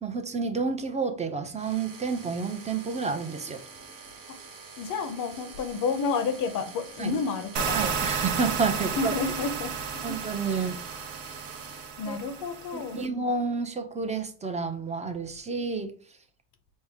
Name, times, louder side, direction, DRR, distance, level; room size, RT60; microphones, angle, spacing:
voice 1, 0.0-3.6 7.0-7.2 7.7-9.1 10.0-10.8 12.1-12.2 12.7-15.9, right 4 dB, 15° right, 0.6 m, -30 dB
sound 1, 1.6-11.9, right 4 dB, 45° right, 1.2 m, -46 dB
voice 2, 4.8-8.0 8.8-10.1 10.5-10.7 12.0-13.0, left 5 dB, 50° left, 0.6 m, -31 dB
sound 2, 7.6-13.1, right 6 dB, 65° right, 0.8 m, -32 dB
5.2 x 2.1 x 3.5 m
supercardioid pair, 100°, 43 cm